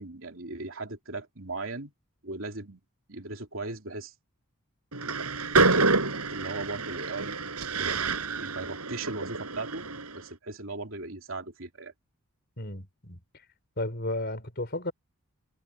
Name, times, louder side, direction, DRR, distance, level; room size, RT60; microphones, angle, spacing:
voice 1, 0.0-1.9 2.2-2.8 3.1-4.1 6.3-9.9 10.1-11.9, right 2 dB, 60° right, 3.4 m, -38 dB
Train, 4.9-10.2, right 3 dB, 85° right, 6.0 m, -28 dB
voice 2, 12.6-13.2 13.8-14.9, left 1 dB, 45° left, 4.5 m, -33 dB
head